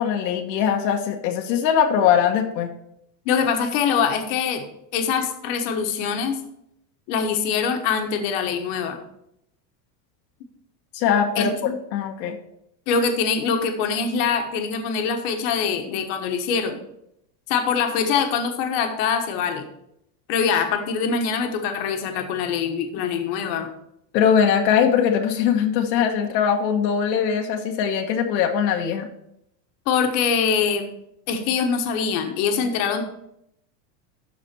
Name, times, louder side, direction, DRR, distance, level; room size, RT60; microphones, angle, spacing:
voice 1, 0.0-2.7 10.9-12.4 24.1-29.1, left 8 dB, 85° left, 3 dB, 1.3 m, -21 dB
voice 2, 3.2-4.6 4.9-6.4 7.1-9.0 11.4-11.8 12.9-16.8 17.5-19.6 20.3-23.7 29.9-30.9 31.3-33.0, left 6 dB, 50° left, 4 dB, 1.3 m, -23 dB
12.5 x 4.2 x 4.4 m, 0.77 s
supercardioid pair, 160°, 50 cm